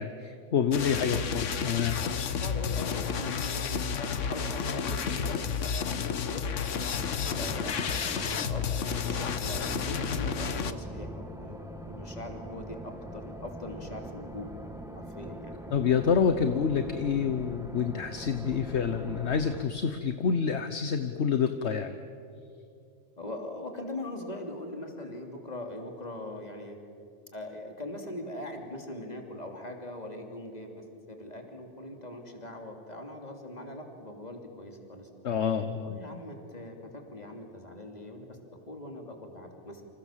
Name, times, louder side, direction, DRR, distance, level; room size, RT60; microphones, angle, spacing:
voice 1, 0.0-2.0 15.7-21.9 35.2-36.0, left 6 dB, 65° left, 9 dB, 1.2 m, -28 dB
sound 1, 0.7-10.7, left 6 dB, 80° left, 1.4 m, -31 dB
voice 2, 0.9-1.2 2.4-3.8 4.2-6.5 6.9-8.7 9.1-14.5 14.9-15.6 23.2-26.8 27.3-35.1 35.8-38.4 38.7-39.8, left 1 dB, 35° left, 3 dB, 3.2 m, -41 dB
sound 2, 6.9-19.6, equal, ahead, 1.9 m, -42 dB
28.5 x 26.5 x 7.5 m, 2.4 s
omnidirectional pair, 1.3 m